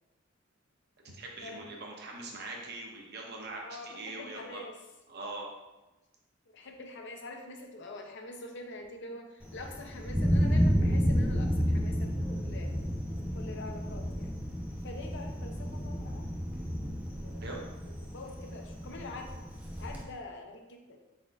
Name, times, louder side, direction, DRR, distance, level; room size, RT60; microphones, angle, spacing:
voice 1, 1.1-4.6 5.1-5.5 17.4-17.6, right 2 dB, 55° right, 0 dB, 0.8 m, -42 dB
voice 2, 3.6-4.7 6.5-12.7 13.3-14.4 14.8-16.3 17.2-17.6 17.9-19.3 19.8-21.0, left 2 dB, 60° left, 3 dB, 0.6 m, -45 dB
Thunder, 9.4-20.0, equal, 10° right, 0.6 m, -31 dB
4.5 x 4.2 x 2.4 m, 1.1 s
head